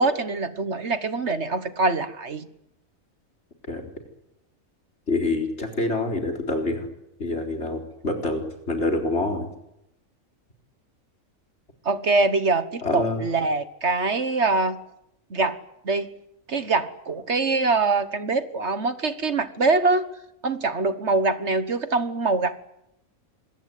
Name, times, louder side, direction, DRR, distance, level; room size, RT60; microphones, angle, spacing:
voice 1, 0.0-2.5 11.8-14.8 15.3-16.1 16.5-20.0 20.4-22.6, right 3 dB, 55° right, 11 dB, 1.7 m, -24 dB
voice 2, 5.1-6.9 7.2-9.5 12.8-13.2, left 2 dB, 55° left, 3 dB, 4.4 m, -26 dB
26.5 x 22.0 x 9.2 m, 0.84 s
omnidirectional pair, 1.4 m